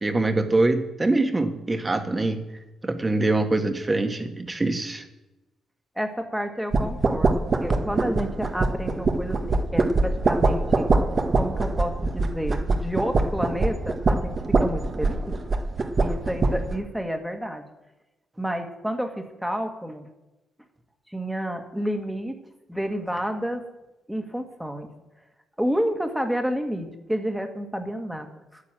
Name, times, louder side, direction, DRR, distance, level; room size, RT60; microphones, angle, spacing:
voice 1, 0.0-2.4 2.8-5.0, right 2 dB, 20° right, 6 dB, 1.6 m, -24 dB
voice 2, 6.0-10.9 11.4-15.4 16.0-17.7 18.4-20.1 21.1-22.4 22.7-23.6 24.1-24.9 25.6-28.6, equal, 5° right, 5 dB, 1.8 m, -30 dB
sound 1, 6.7-16.8, right 3 dB, 40° right, 1.3 m, -24 dB
10.5 x 9.8 x 7.6 m, 1.0 s
cardioid pair, 90°, 0 cm